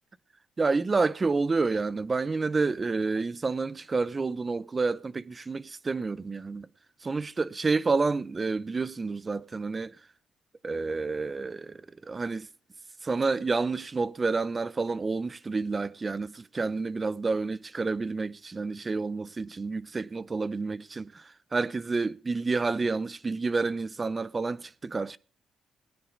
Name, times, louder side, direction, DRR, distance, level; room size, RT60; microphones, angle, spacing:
voice 1, 0.6-6.7 7.0-10.0 10.6-12.5 13.0-25.2, right 4 dB, 30° right, 0.6 m, -29 dB
18.5 x 10.5 x 3.8 m
cardioid pair, 90°, 0 cm